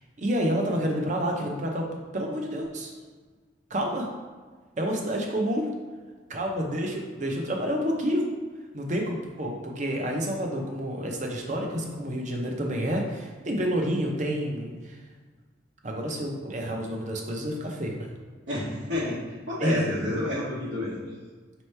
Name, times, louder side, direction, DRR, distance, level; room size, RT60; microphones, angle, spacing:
voice 1, 0.2-2.9 3.7-4.1 4.8-5.7 6.3-8.3 8.7-15.0 15.8-18.1 19.6-19.8, equal, 40° right, 1 dB, 0.6 m, -29 dB
voice 2, 18.5-19.2 19.5-21.0, left 1 dB, 90° right, -11 dB, 1.2 m, -29 dB
5.3 x 3.0 x 3.3 m, 1.4 s
head